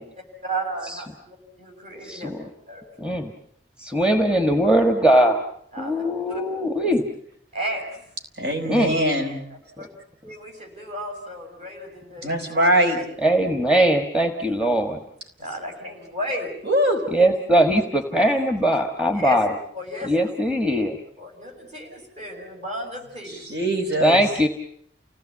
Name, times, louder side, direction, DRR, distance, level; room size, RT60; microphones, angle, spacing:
voice 1, 0.5-2.3 2.7-2.9 5.7-6.4 7.5-7.8 9.8-9.9 10.2-13.0 15.4-16.5 19.1-19.4 19.7-20.3 21.2-23.6, right 1 dB, 40° right, 1 dB, 6.8 m, -34 dB
voice 2, 2.0-2.5 3.0-3.3 3.8-5.4 5.8-7.0 8.7-8.9 13.2-15.0 17.1-19.5 20.0-21.0 24.0-24.5, right 1 dB, 5° right, 5 dB, 1.5 m, -20 dB
voice 3, 8.4-9.4 12.2-13.0 16.6-17.0 23.3-24.2, equal, 70° right, 3 dB, 4.7 m, -22 dB
29.5 x 18.0 x 8.6 m, 0.69 s
head